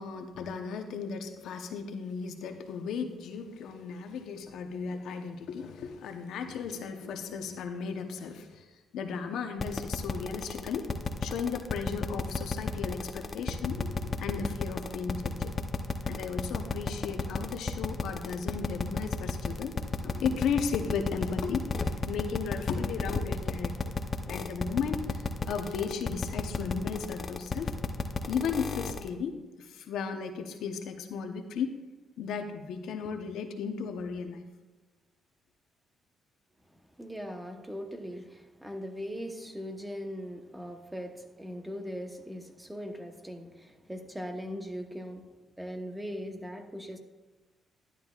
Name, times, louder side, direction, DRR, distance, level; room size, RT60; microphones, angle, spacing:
voice 1, 0.0-8.7 8.9-10.9 11.2-15.5 16.1-19.8 20.0-21.7 22.1-23.9 24.3-27.7 28.3-31.8 32.2-34.5, left 6 dB, 80° left, 5 dB, 0.9 m, -35 dB
sound 1, 9.6-29.1, left 4 dB, 40° left, 0.7 m, -32 dB
voice 2, 37.0-45.3 45.6-47.0, equal, 10° right, 5 dB, 1.0 m, -40 dB
11.5 x 10.0 x 2.4 m, 1.2 s
cardioid pair, 90°, 0 cm